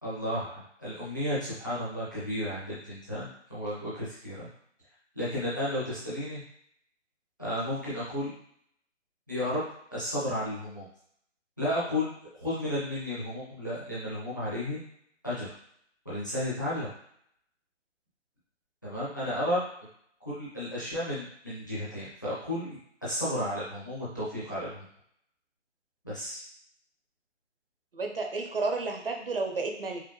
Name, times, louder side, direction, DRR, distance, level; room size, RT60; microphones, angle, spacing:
voice 1, 0.0-4.5 5.1-6.4 7.4-8.3 9.3-9.6 9.9-10.9 11.6-12.1 12.4-14.8 15.2-15.5 16.0-16.9 18.8-19.6 20.2-24.8 26.0-26.4, left 1 dB, 15° left, -10 dB, 0.6 m, -33 dB
voice 2, 27.9-30.0, right 3 dB, 50° right, 3 dB, 0.6 m, -31 dB
4.7 x 2.1 x 3.1 m, 0.68 s
hypercardioid pair, 170°, 37 cm